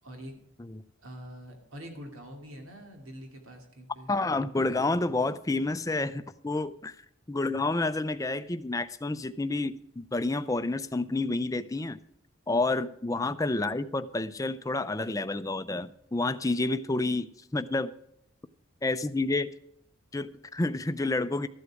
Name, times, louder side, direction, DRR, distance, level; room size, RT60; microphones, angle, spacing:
voice 1, 0.0-0.4 1.0-4.1, equal, 90° right, 3 dB, 2.6 m, -45 dB
voice 2, 4.1-7.0 7.3-12.0 12.5-17.9 18.8-19.5 20.1-21.5, left 2 dB, 15° left, 12 dB, 0.4 m, -29 dB
13.5 x 8.2 x 4.8 m, 0.77 s
head